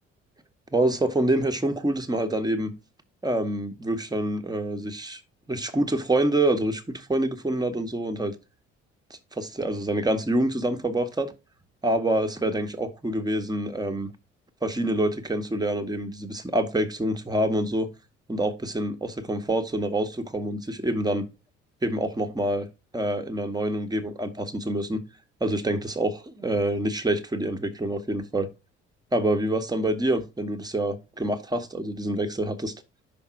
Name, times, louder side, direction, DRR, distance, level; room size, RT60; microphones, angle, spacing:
voice 1, 0.7-2.7 3.2-5.2 5.5-8.3 9.3-11.3 11.8-14.1 14.6-17.9 18.3-21.3 21.8-22.7 22.9-25.0 25.4-28.5 29.1-32.7, right 1 dB, 10° right, 1.2 m, -26 dB
5.9 x 3.6 x 5.9 m
figure-of-eight pair, 45°, 33 cm